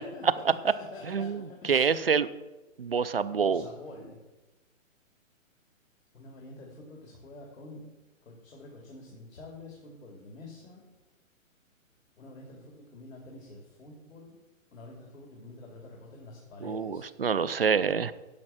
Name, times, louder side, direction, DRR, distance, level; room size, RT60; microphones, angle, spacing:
voice 1, 0.0-1.9 3.3-4.2 6.1-7.8 8.2-10.8 12.2-14.4 14.7-17.1, left 2 dB, 75° left, -1 dB, 3.0 m, -47 dB
voice 2, 1.1-2.3 2.8-3.6 16.6-18.1, right 6 dB, 45° right, 15 dB, 0.4 m, -27 dB
10.5 x 6.6 x 7.4 m, 1.1 s
hypercardioid pair, 175°, 40 cm